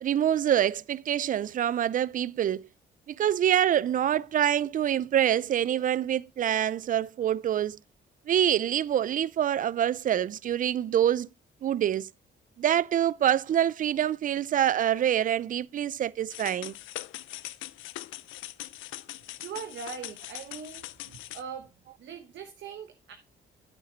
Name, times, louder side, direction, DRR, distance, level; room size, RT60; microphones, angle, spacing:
voice 1, 0.0-2.7 3.1-7.8 8.3-11.3 11.6-12.1 12.6-16.7, right 10 dB, 45° right, 0.4 m, -26 dB
sound 1, 16.3-21.4, left 16 dB, 85° left, 0.5 m, -41 dB
voice 2, 19.1-21.7 22.0-23.1, right 7 dB, 65° right, 1.1 m, -41 dB
8.9 x 6.7 x 3.9 m
cardioid pair, 90°, 20 cm